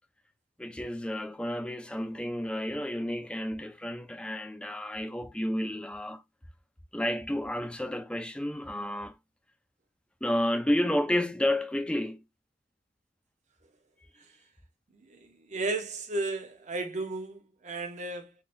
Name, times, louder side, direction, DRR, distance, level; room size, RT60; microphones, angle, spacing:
voice 1, 0.6-6.2 6.9-9.2 10.2-12.2, left 1 dB, 5° left, 0.4 m, -31 dB
voice 2, 14.9-18.3, right 2 dB, 40° right, 0.8 m, -34 dB
3.6 x 2.3 x 2.6 m
head